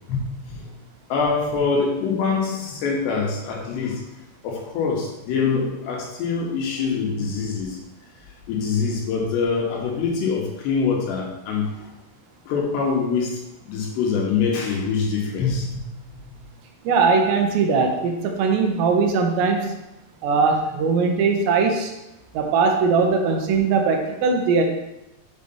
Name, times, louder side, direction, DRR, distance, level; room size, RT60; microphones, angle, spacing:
voice 1, 1.1-4.0 4.4-7.8 8.5-11.7 12.5-13.4 13.7-15.8, left 5 dB, 75° left, -1 dB, 3.0 m, -24 dB
voice 2, 16.9-19.7 20.2-21.9 22.3-24.6, right 4 dB, 80° right, 3 dB, 2.8 m, -20 dB
7.7 x 3.2 x 5.4 m, 0.92 s
omnidirectional pair, 5.2 m